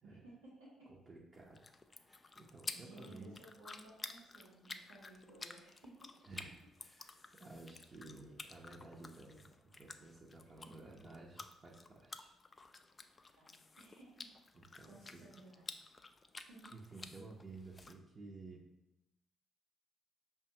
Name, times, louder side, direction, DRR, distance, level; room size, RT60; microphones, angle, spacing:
voice 1, 0.0-0.9 2.7-6.3 10.4-10.9 13.4-14.3 14.8-15.6 16.5-16.8, right 1 dB, 90° right, -10 dB, 0.9 m, -58 dB
voice 2, 0.9-1.7 1.9-3.4 6.3-12.3 13.0-13.4 14.5-15.2 16.7-18.7, right 3 dB, 40° right, -4 dB, 0.6 m, -54 dB
sound 1, 1.3-17.9, left 3 dB, 30° left, 0.3 m, -52 dB
5.0 x 2.3 x 2.8 m, 0.88 s
hypercardioid pair, 50°, 0 cm